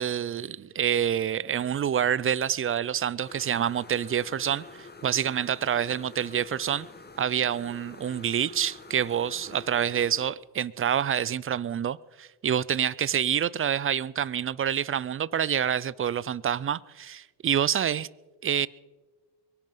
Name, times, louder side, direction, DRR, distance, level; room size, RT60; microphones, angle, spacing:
voice 1, 0.0-6.9 7.2-18.1 18.4-18.7, right 9 dB, 30° right, 0.4 m, -27 dB
sound 1, 3.3-10.2, left 3 dB, 20° left, 1.8 m, -47 dB
23.0 x 10.5 x 5.5 m
supercardioid pair, 90°, 48 cm